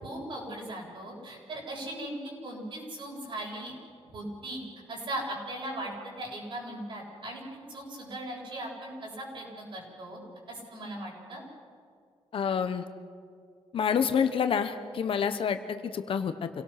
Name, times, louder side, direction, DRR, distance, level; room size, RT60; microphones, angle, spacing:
voice 1, 0.0-2.2 2.4-3.7 4.1-4.6 4.9-5.9 6.2-10.2 10.5-11.4 15.2-15.3, right 1 dB, 50° right, -2 dB, 7.7 m, -38 dB
voice 2, 12.3-12.8 13.7-16.5, left 7 dB, 60° left, 9 dB, 1.2 m, -28 dB
28.5 x 18.0 x 6.1 m, 2.2 s
wide cardioid pair, 135°, 11 cm